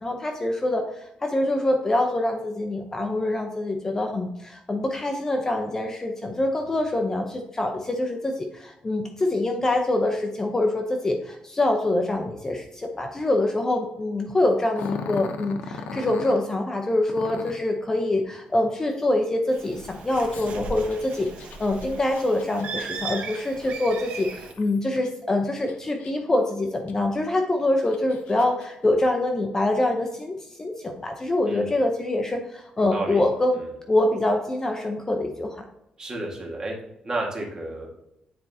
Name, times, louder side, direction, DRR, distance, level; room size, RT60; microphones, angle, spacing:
voice 1, 0.0-33.6 33.9-35.6, left 1 dB, 20° left, 4 dB, 0.7 m, -25 dB
Growling, 14.7-16.4 17.1-17.7 20.3-25.1 25.5-26.4 26.9-27.0 27.6-28.7, left 4 dB, 90° left, 0.7 m, -39 dB
Bird, 19.5-24.5, right 4 dB, 70° right, 1.0 m, -37 dB
voice 2, 32.8-33.2 33.6-33.7 36.0-36.8 37.0-37.9, right 2 dB, 30° right, -1 dB, 1.8 m, -31 dB
9.4 x 4.5 x 2.8 m, 0.82 s
cardioid pair, 140°, 3 cm